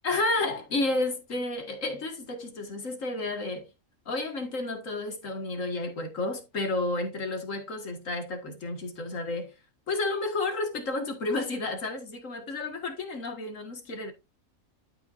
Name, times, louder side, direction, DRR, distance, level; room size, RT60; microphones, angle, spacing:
voice 1, 0.0-3.7 4.1-9.5 9.9-14.1, left 2 dB, 70° left, 2.2 m, -31 dB
12.0 x 5.7 x 2.6 m
omnidirectional pair, 1.4 m